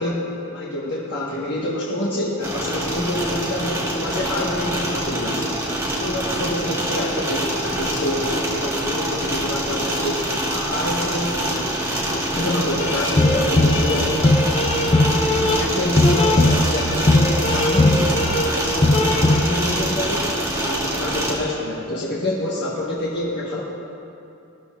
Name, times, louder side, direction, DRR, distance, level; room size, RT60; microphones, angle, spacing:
voice 1, 0.0-5.6 6.0-14.4 15.3-23.6, left 1 dB, 50° left, -6 dB, 1.4 m, -27 dB
sound 1, 2.4-21.3, right 1 dB, 15° right, 1.7 m, -25 dB
sound 2, 12.8-19.4, left 2 dB, 25° left, 0.6 m, -19 dB
19.5 x 13.0 x 2.5 m, 2.6 s
head